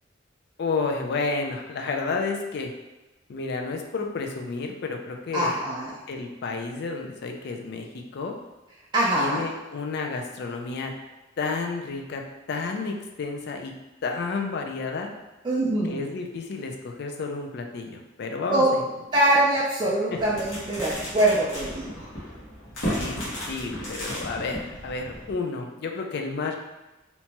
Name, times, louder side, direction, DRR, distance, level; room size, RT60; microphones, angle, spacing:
voice 1, 0.6-2.7 3.3-5.6 6.1-7.9 8.1-8.3 9.2-10.9 11.4-12.2 12.5-13.7 14.0-15.1 15.9-18.9 22.9-26.6, left 4 dB, 55° left, 3 dB, 0.4 m, -31 dB
voice 2, 5.3-5.9 8.9-9.4 15.4-16.0 18.5-18.7 19.1-22.1, right 1 dB, 25° right, -6 dB, 0.4 m, -23 dB
sound 1, 20.2-25.3, equal, 80° left, 1.2 m, -34 dB
2.9 x 2.2 x 2.8 m, 1.1 s
head